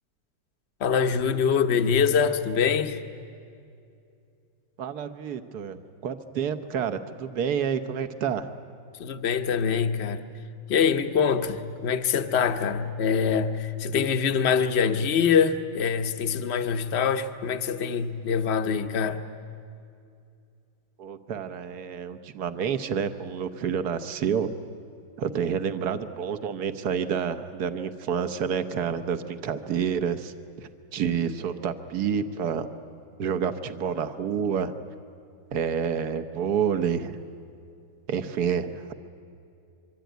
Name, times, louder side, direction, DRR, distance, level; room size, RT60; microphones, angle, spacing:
voice 1, 0.8-3.0 9.0-10.3 10.7-19.2, left 6 dB, 45° left, 1.0 m, -24 dB
voice 2, 4.8-8.5 21.0-24.5 25.2-30.3 30.6-32.7 33.2-34.7 35.5-37.2 38.1-38.9, right 7 dB, 60° right, 1.5 m, -29 dB
24.5 x 24.0 x 9.3 m
omnidirectional pair, 2.1 m